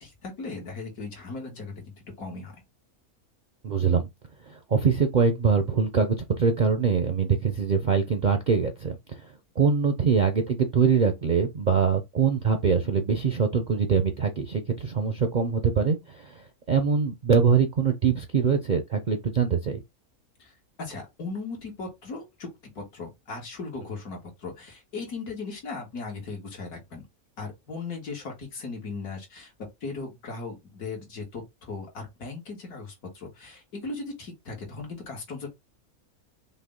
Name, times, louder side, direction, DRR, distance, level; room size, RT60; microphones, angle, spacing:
voice 1, 0.0-1.7 2.2-2.5 20.4-20.5 20.8-22.5 22.8-27.0 27.4-29.5 29.8-35.5, left 3 dB, 80° left, 2.1 m, -37 dB
voice 2, 3.6-4.1 4.5-9.2 9.6-19.8, right 6 dB, 60° right, 0.4 m, -23 dB
5.6 x 2.2 x 3.7 m
omnidirectional pair, 1.5 m